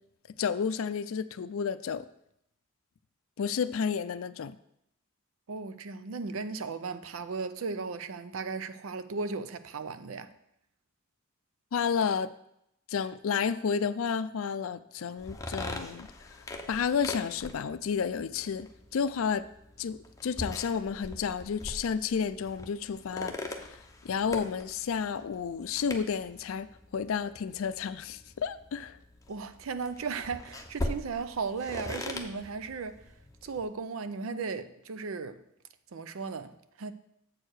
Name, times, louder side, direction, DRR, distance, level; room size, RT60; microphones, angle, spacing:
voice 1, 0.4-2.0 3.4-4.6 11.7-12.3 12.9-16.1 16.7-19.5 19.8-23.8 24.0-29.0, left 6 dB, 70° left, 0.4 m, -31 dB
voice 2, 5.5-10.3 29.3-33.0 33.4-35.4 35.9-36.9, right 4 dB, 70° right, 0.5 m, -36 dB
sound 1, 15.2-33.7, left 1 dB, 15° left, 0.7 m, -42 dB
7.6 x 4.6 x 6.3 m
head